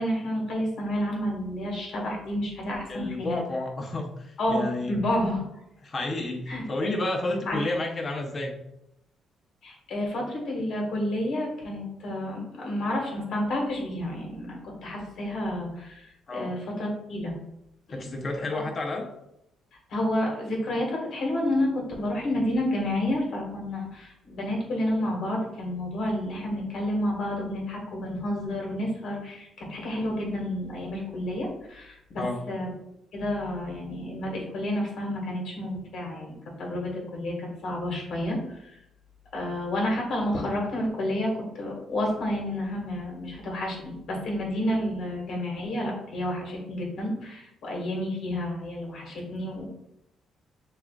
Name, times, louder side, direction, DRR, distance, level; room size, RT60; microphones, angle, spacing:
voice 1, 0.0-3.4 4.4-5.4 6.5-6.9 7.5-7.6 9.6-17.4 17.9-18.0 19.9-32.7 33.1-38.7 39.3-49.7, left 1 dB, 65° left, -1 dB, 1.5 m, -30 dB
voice 2, 2.9-4.9 5.8-8.6 16.3-16.5 17.9-19.0 32.2-32.4, left 2 dB, 40° left, 2 dB, 0.8 m, -31 dB
6.4 x 2.5 x 2.4 m, 0.81 s
cardioid pair, 90°, 0 cm